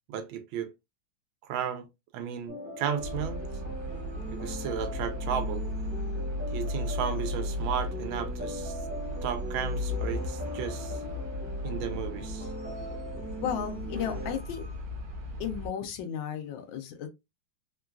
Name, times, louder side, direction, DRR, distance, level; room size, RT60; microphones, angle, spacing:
voice 1, 0.1-0.7 1.5-1.8 2.1-3.4 4.3-5.6 6.5-8.8 9.2-11.0 11.6-12.5, right 8 dB, 80° right, 1.4 m, -34 dB
sound 1, 2.5-14.4, equal, 10° right, 0.7 m, -40 dB
sound 2, 3.0-15.7, left 1 dB, 55° right, 1.3 m, -35 dB
voice 2, 13.4-14.7 15.4-17.1, left 8 dB, 75° left, 1.3 m, -34 dB
3.8 x 2.3 x 2.3 m
omnidirectional pair, 2.2 m